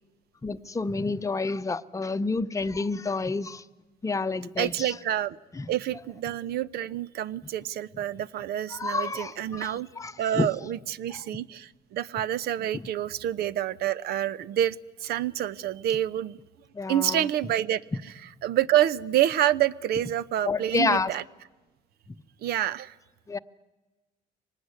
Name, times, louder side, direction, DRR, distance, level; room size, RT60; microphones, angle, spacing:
voice 1, 0.4-3.6 4.0-4.9 5.5-5.7 8.7-10.5 12.7-12.8 16.7-17.3 20.4-21.1 23.3-23.4, left 3 dB, 20° left, 0.8 m, -29 dB
voice 2, 4.6-5.4 5.7-9.9 10.2-16.4 16.9-17.8 18.4-21.2 22.4-22.9, right 11 dB, 70° right, 0.8 m, -27 dB
24.5 x 19.5 x 9.7 m
cardioid pair, 110°, 17 cm